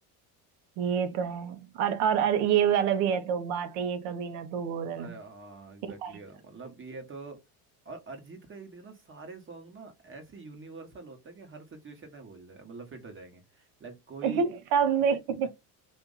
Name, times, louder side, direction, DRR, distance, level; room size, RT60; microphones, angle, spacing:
voice 1, 0.8-5.2 5.8-6.1 14.2-15.5, right 7 dB, 75° right, 0.8 m, -27 dB
voice 2, 5.0-7.4 7.8-14.5 15.4-15.5, right 3 dB, 25° right, 1.1 m, -45 dB
2.9 x 2.5 x 3.8 m
supercardioid pair, 95°, 44 cm